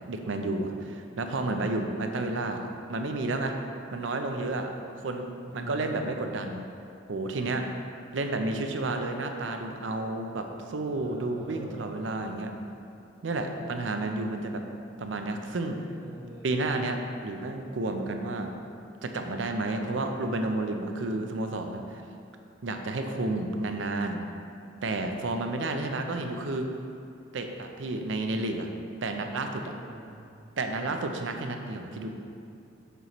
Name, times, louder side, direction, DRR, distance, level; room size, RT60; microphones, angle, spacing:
voice 1, 0.0-3.5 3.9-4.7 5.0-6.6 7.1-7.6 8.1-12.5 13.2-14.6 15.0-15.8 16.4-18.5 19.0-22.0 22.6-24.2 24.8-26.7 27.3-28.7 29.0-29.7 30.6-32.1, right 2 dB, 75° right, 5 dB, 0.5 m, -31 dB
voice 2, 5.4-6.0 10.9-11.9 15.9-16.6 29.6-30.3, right 1 dB, 15° right, -5 dB, 1.0 m, -44 dB
6.7 x 6.6 x 3.0 m, 2.5 s
head